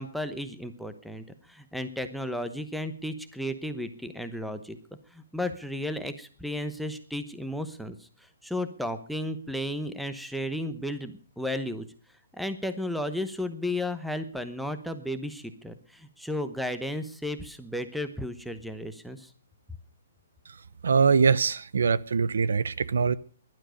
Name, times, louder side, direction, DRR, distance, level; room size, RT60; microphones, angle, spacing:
voice 1, 0.0-4.8 5.1-11.8 12.3-19.3, left 1 dB, ahead, 0.9 m, -34 dB
voice 2, 20.8-23.1, right 5 dB, 85° right, 0.8 m, -23 dB
15.5 x 12.0 x 6.4 m
hypercardioid pair, 170°, 0 cm